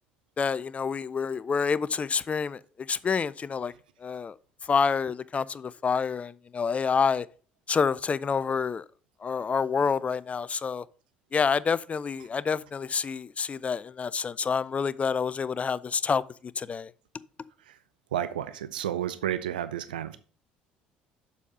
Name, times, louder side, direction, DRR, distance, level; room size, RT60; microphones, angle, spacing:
voice 1, 0.4-2.6 2.9-3.7 4.0-4.3 4.7-7.3 7.7-8.8 9.2-10.8 11.3-16.2 16.6-16.9, left 5 dB, 30° left, 0.4 m, -28 dB
voice 2, 18.1-20.2, right 10 dB, 80° right, 0.4 m, -31 dB
7.1 x 4.2 x 5.3 m
figure-of-eight pair, 60°, 5 cm